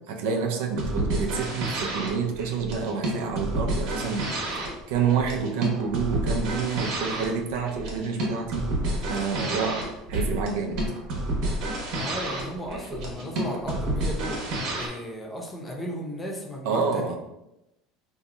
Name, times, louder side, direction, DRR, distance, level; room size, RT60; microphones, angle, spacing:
voice 1, 0.0-4.2 4.5-8.7 9.1-9.8 10.1-10.8 16.7-17.2, right 6 dB, 85° right, 3 dB, 0.5 m, -28 dB
sound 1, 0.7-14.9, right 1 dB, 60° right, 0.9 m, -30 dB
voice 2, 11.9-14.5 14.8-17.2, equal, 15° left, -1 dB, 0.6 m, -35 dB
2.7 x 2.3 x 4.1 m, 0.92 s
cardioid pair, 140°, 0 cm